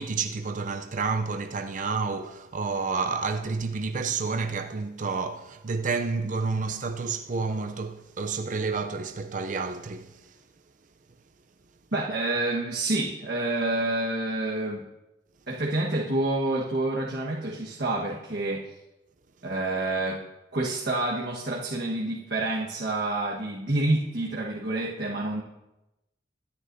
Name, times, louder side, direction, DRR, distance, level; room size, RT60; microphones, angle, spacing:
voice 1, 0.0-10.3, right 4 dB, 45° right, 0.5 m, -30 dB
voice 2, 11.9-14.9 15.5-18.7 19.4-20.2 20.5-25.4, right 2 dB, 65° right, 1.4 m, -28 dB
24.0 x 9.7 x 2.7 m
head